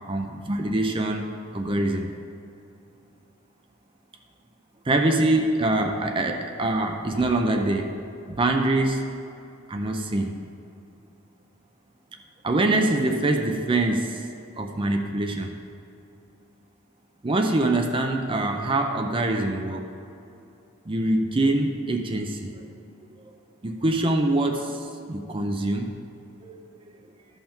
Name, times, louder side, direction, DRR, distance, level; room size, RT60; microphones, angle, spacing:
voice 1, 0.1-1.3 1.5-2.1 4.9-7.9 8.4-9.1 9.7-10.4 12.4-14.2 14.6-15.5 17.2-19.8 20.9-22.6 23.6-25.9 26.4-26.6, right 2 dB, 25° right, 4 dB, 0.5 m, -24 dB
13.0 x 5.6 x 4.4 m, 2.7 s
head